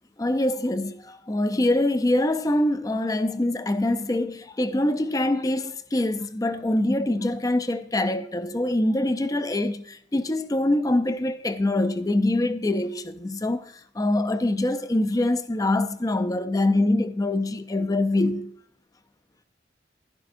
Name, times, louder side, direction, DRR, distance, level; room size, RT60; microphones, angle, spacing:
voice 1, 0.2-18.5, left 1 dB, 20° left, 0.4 m, -24 dB
11.0 x 10.5 x 2.6 m
head